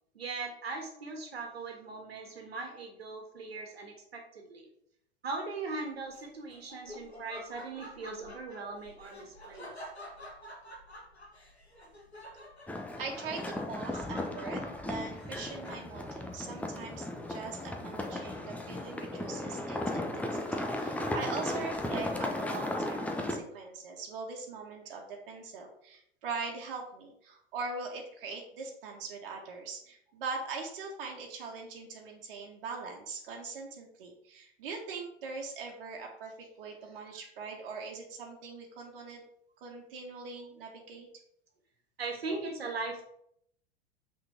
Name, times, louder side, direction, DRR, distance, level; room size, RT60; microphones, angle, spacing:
voice 1, 0.2-4.7 5.2-9.7 42.0-43.0, right 3 dB, 75° right, 2 dB, 1.8 m, -39 dB
Laughter, 6.1-16.1, equal, 90° left, 1.5 m, -49 dB
sound 1, 12.7-23.4, left 1 dB, 5° left, 1.0 m, -36 dB
voice 2, 12.7-39.2 39.6-41.1, right 4 dB, 60° right, 1 dB, 1.7 m, -41 dB
6.2 x 4.4 x 5.9 m, 0.71 s
figure-of-eight pair, 85°, 31 cm